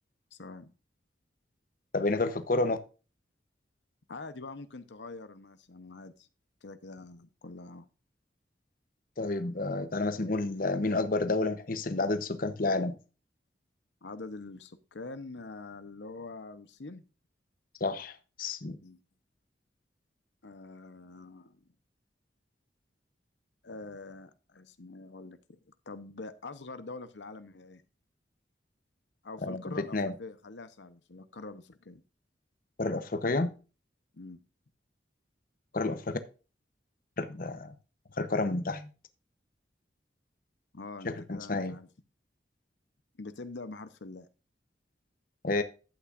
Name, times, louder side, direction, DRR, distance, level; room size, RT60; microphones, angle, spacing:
voice 1, 0.3-0.7 4.1-6.3 6.6-7.9 14.0-17.0 18.8-19.0 20.4-21.6 23.6-25.6 25.9-27.8 29.2-32.0 34.1-34.4 40.7-41.9 43.2-44.3, left 3 dB, 80° left, 0.9 m, -45 dB
voice 2, 1.9-2.8 9.2-13.0 17.8-18.8 29.4-30.1 32.8-33.5 35.7-36.2 37.2-37.7 38.2-38.9 41.0-41.7 45.4-45.6, left 2 dB, 50° left, 0.9 m, -30 dB
11.5 x 8.6 x 2.5 m
head